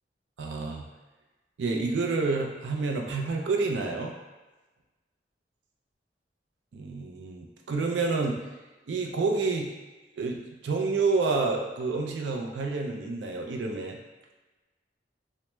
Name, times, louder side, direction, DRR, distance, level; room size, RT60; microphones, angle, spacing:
voice 1, 0.4-0.9 1.6-4.1 6.7-8.4 8.9-9.7 10.2-14.0, right 3 dB, 80° right, 2 dB, 0.4 m, -29 dB
3.2 x 2.0 x 2.9 m, 1.2 s
head